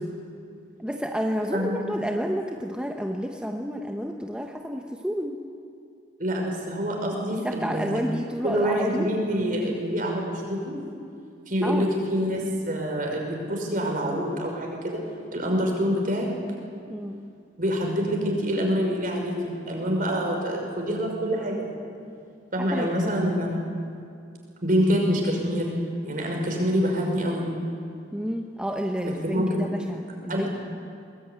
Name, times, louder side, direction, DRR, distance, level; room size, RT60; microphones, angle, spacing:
voice 1, 0.8-5.4 7.3-9.1 11.6-11.9 16.9-17.2 22.7-23.2 28.1-30.5, equal, 5° right, 2 dB, 1.1 m, -30 dB
voice 2, 1.5-1.9 6.2-8.0 8.4-10.8 11.5-15.0 15.3-16.3 17.6-21.8 22.5-23.7 24.6-25.8 26.0-27.5 29.0-29.7 30.3-30.5, equal, 45° right, 1 dB, 5.7 m, -26 dB
23.0 x 19.5 x 9.6 m, 2.4 s
head